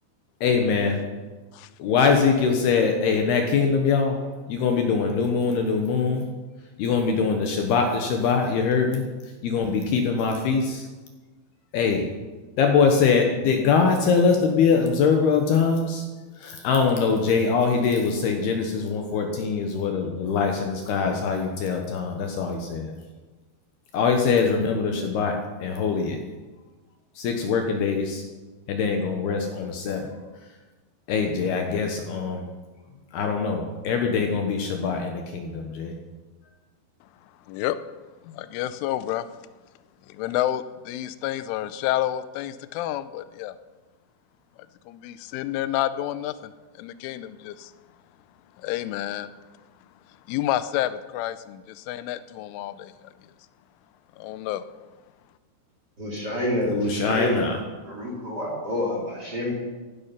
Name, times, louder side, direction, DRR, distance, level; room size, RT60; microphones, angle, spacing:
voice 1, 0.4-1.0 1.8-4.2 4.5-6.3 6.8-9.1 9.4-10.9 11.7-12.1 12.6-16.1 16.4-23.0 23.9-26.2 27.2-28.2 28.7-30.1 31.1-32.4 33.1-35.9 56.7-57.5, left 5 dB, 70° left, 3 dB, 2.7 m, -23 dB
voice 2, 37.5-37.8 38.2-39.3 40.1-43.6 44.9-47.7 48.6-49.3 50.3-52.9 54.2-54.7, left 13 dB, 90° left, 13 dB, 3.1 m, -29 dB
voice 3, 56.0-57.6 57.8-59.5, left 1 dB, 25° right, -3 dB, 2.8 m, -28 dB
15.5 x 10.5 x 5.8 m, 1.2 s
omnidirectional pair, 5.5 m